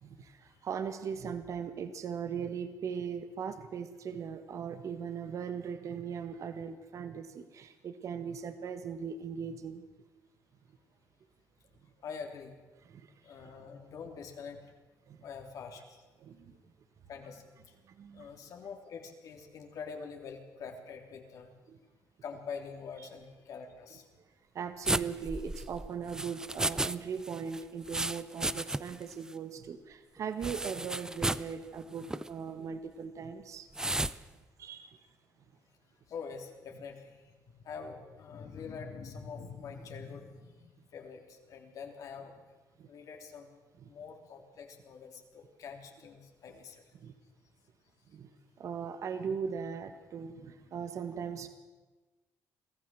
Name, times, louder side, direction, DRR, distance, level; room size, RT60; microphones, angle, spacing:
voice 1, 0.0-9.9 12.9-13.1 13.4-13.5 15.1-15.2 16.2-16.6 17.9-18.3 21.7-21.8 24.5-33.7 34.6-35.0 42.8-42.9 43.8-43.9 46.9-47.1 48.1-48.3 48.6-51.5, right 6 dB, 55° right, 10 dB, 1.7 m, -39 dB
voice 2, 12.0-12.6 13.2-14.7 15.2-16.0 17.1-17.7 18.1-21.5 22.2-24.0 36.1-42.4 42.8-43.5 43.8-46.8, left 5 dB, 65° left, 3 dB, 3.3 m, -45 dB
sound 1, 24.8-27.0 27.2-29.0 29.3-29.4 30.4-31.5 32.0-32.3 33.7-34.2, right 2 dB, 10° right, 0.6 m, -33 dB
23.0 x 14.5 x 7.7 m, 1.2 s
cardioid pair, 100°, 6 cm